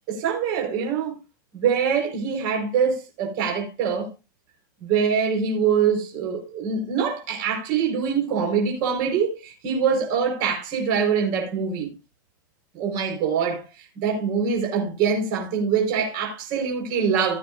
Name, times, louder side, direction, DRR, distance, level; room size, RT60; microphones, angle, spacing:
voice 1, 0.1-1.2 1.5-4.1 4.8-11.9 12.7-13.6 13.9-17.4, right 6 dB, 40° right, 4.9 m, -24 dB
16.5 x 8.9 x 2.6 m
supercardioid pair, 165°, 11 cm